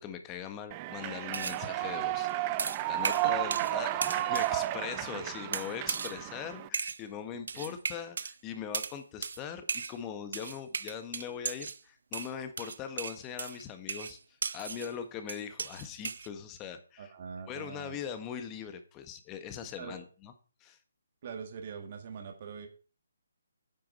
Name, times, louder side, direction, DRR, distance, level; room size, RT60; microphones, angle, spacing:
voice 1, 0.0-2.3 2.9-14.2 14.5-17.1 17.5-20.3 20.6-20.8, left 8 dB, 20° left, 8 dB, 1.4 m, -41 dB
Human voice / Clapping / Cheering, 0.7-6.7, right 15 dB, 25° right, 0.6 m, -33 dB
sound 1, 1.3-1.6 2.6-3.8 4.0-4.5 5.5-6.2 6.7-7.0 7.5-8.3 8.7-9.0 9.2-9.4 9.7-10.0 10.3-11.8 12.1-14.9 15.3-16.3, right 5 dB, 65° right, 0.8 m, -36 dB
voice 2, 3.2-3.7 5.1-5.3 7.5-7.8 17.0-18.0 19.8-20.0 21.2-22.7, right 6 dB, 45° right, 5 dB, 1.9 m, -43 dB
9.7 x 7.7 x 5.5 m, 0.37 s
hypercardioid pair, 155°, 0 cm